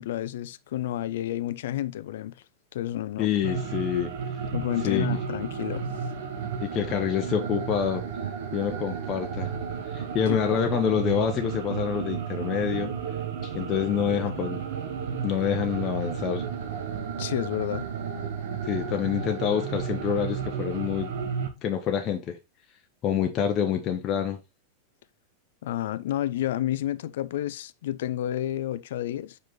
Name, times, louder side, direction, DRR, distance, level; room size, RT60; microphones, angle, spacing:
voice 1, 0.0-2.4 2.7-3.5 4.5-5.9 10.3-10.4 17.2-17.9 18.9-19.0 25.6-29.4, left 13 dB, 65° left, 0.5 m, -30 dB
voice 2, 3.2-4.1 4.8-5.2 6.6-8.0 8.5-9.5 9.9-12.9 13.4-14.6 15.2-16.4 18.6-21.1 21.6-22.4 23.0-24.4, left 8 dB, 35° left, 1.0 m, -27 dB
sound 1, 3.4-21.5, right 7 dB, 65° right, 1.4 m, -33 dB
5.4 x 5.1 x 3.8 m
hypercardioid pair, 95°, 0 cm